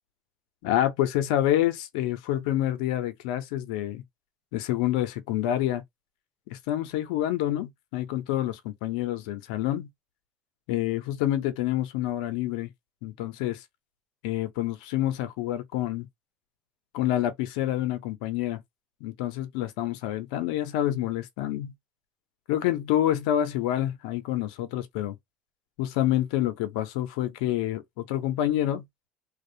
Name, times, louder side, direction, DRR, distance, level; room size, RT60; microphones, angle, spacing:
voice 1, 0.6-4.0 4.5-5.8 6.5-9.9 10.7-12.7 13.0-13.6 14.2-16.1 16.9-18.6 19.0-21.7 22.5-25.2 25.8-28.8, left 13 dB, 85° left, 0.5 m, -27 dB
2.3 x 2.0 x 2.7 m
supercardioid pair, 90°, 4 cm